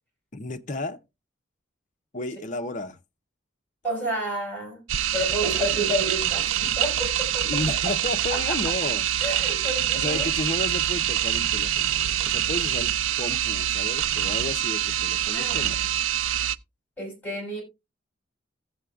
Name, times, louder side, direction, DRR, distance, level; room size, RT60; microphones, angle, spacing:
voice 1, 0.3-1.0 2.1-3.0 7.4-9.1 9.9-12.9 13.2-15.8, left 2 dB, 40° left, 0.7 m, -32 dB
voice 2, 3.8-4.8 5.1-7.8 8.3-8.6 9.2-10.3 15.3-15.9 17.0-17.6, right 1 dB, 10° left, 5.6 m, -30 dB
sound 1, 4.9-16.6, right 11 dB, 85° right, 0.4 m, -25 dB
15.5 x 7.7 x 2.3 m
head